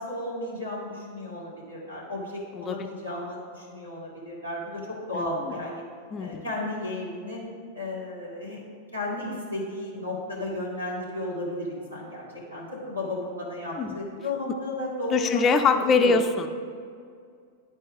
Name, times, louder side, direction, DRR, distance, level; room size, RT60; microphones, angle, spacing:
voice 1, 0.0-5.8 6.2-7.4 7.7-8.6 8.9-15.4 15.9-16.2, left 1 dB, 90° right, -5 dB, 2.0 m, -34 dB
voice 2, 2.6-2.9 5.1-5.3 6.1-6.5 13.8-14.0 15.1-16.5, left 4 dB, 25° left, 6 dB, 0.4 m, -23 dB
11.5 x 4.3 x 3.5 m, 2.2 s
figure-of-eight pair, 90°, 0 cm